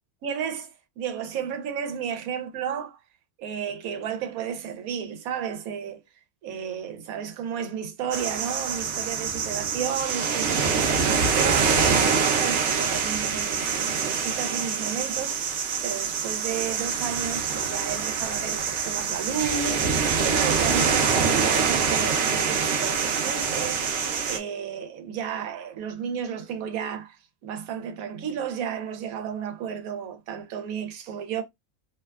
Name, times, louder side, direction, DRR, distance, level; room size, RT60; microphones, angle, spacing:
voice 1, 0.2-3.0 3.4-6.0 6.4-15.4 15.8-23.9 24.2-31.4, right 8 dB, 90° right, 1.1 m, -33 dB
sound 1, 8.1-24.4, right 6 dB, 65° right, 0.8 m, -25 dB
2.7 x 2.2 x 2.2 m
omnidirectional pair, 1.5 m